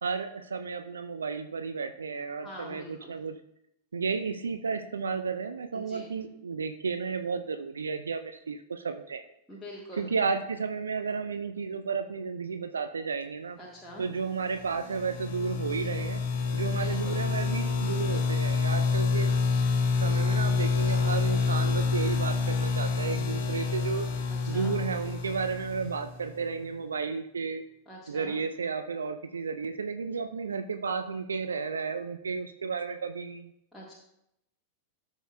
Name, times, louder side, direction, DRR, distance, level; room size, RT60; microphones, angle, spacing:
voice 1, 0.0-3.4 3.9-9.2 10.0-13.6 14.0-16.2 16.5-19.3 20.0-24.1 24.5-27.6 28.1-33.5, right 5 dB, 70° right, 8 dB, 0.4 m, -32 dB
voice 2, 2.4-3.1 5.7-6.1 9.5-10.1 13.6-14.0 16.8-17.2 24.3-24.7 27.9-28.3 33.7-33.9, equal, ahead, -6 dB, 1.4 m, -44 dB
sound 1, 14.5-26.3, left 4 dB, 50° left, 1.4 m, -28 dB
13.0 x 6.3 x 2.2 m, 0.78 s
figure-of-eight pair, 90°, 0 cm